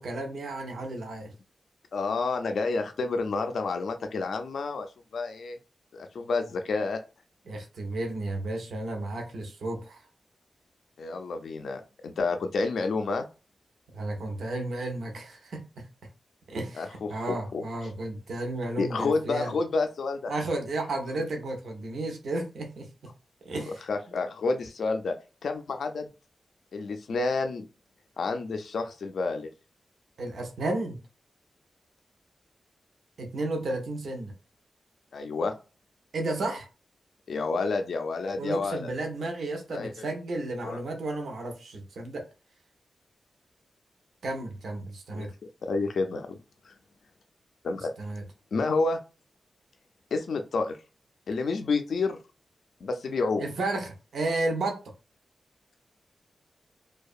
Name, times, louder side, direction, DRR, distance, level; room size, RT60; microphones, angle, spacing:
voice 1, 0.0-1.3 7.5-10.0 13.9-15.9 16.5-19.6 20.3-23.1 23.4-23.8 30.2-31.0 33.2-34.3 36.1-36.7 38.4-42.2 44.2-45.3 48.0-48.3 53.4-54.8, right 2 dB, 90° right, 0.6 m, -33 dB
voice 2, 1.9-5.6 5.9-7.0 11.0-13.3 16.8-17.6 18.8-20.3 23.7-25.2 25.4-26.1 26.7-27.6 28.2-29.5 35.1-35.5 37.3-38.9 39.7-39.9 40.6-40.8 45.1-45.3 45.6-46.4 46.7-46.8 47.6-47.9 48.5-49.0 50.1-50.8 51.3-52.2 52.8-53.5, left 3 dB, 75° left, 0.3 m, -29 dB
2.6 x 2.2 x 2.4 m
wide cardioid pair, 170°, 0 cm